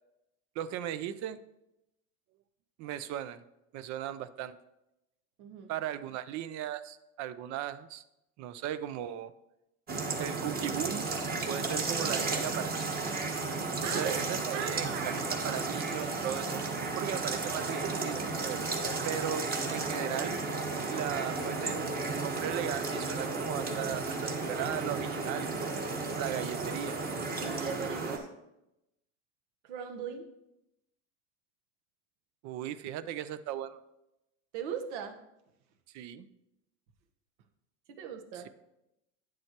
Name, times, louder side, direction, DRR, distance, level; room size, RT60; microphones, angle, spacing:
voice 1, 0.6-1.4 2.8-3.4 3.7-4.6 5.7-8.0 8.4-9.3 10.2-11.1 11.5-12.9 13.8-15.1 15.4-16.6 17.0-18.6 19.0-20.4 20.9-25.7 26.2-27.0 32.4-33.8 35.9-36.3 38.3-38.5, right 11 dB, 50° right, 14 dB, 0.6 m, -37 dB
voice 2, 5.4-5.7 13.8-14.2 14.5-15.2 27.4-28.3 29.6-30.3 34.5-35.2 37.9-38.5, right 7 dB, 75° right, 6 dB, 1.2 m, -39 dB
sound 1, 9.9-28.2, right 3 dB, 25° right, 1.3 m, -33 dB
9.4 x 7.5 x 2.9 m, 0.88 s
supercardioid pair, 115°, 35 cm